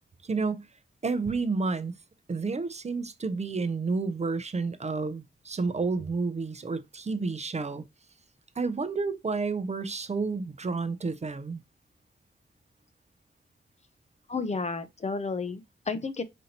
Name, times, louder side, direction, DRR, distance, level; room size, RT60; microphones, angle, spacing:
voice 1, 0.2-0.7 1.0-1.9 2.3-7.9 8.6-11.6, right 4 dB, 35° right, 0.5 m, -30 dB
voice 2, 14.3-16.2, left 4 dB, 35° left, 0.5 m, -32 dB
5.1 x 2.8 x 2.8 m
wide cardioid pair, 85°, 20 cm